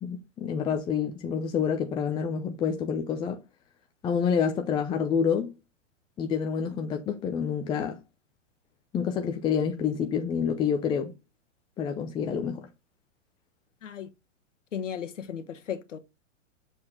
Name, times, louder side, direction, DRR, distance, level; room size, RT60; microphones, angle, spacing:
voice 1, 0.0-3.4 4.0-5.5 6.2-8.0 8.9-11.1 11.8-12.7, left 7 dB, 15° left, 0.5 m, -28 dB
voice 2, 14.7-16.0, left 8 dB, 80° left, 1.2 m, -35 dB
6.8 x 4.2 x 3.6 m
hypercardioid pair, 120°, 37 cm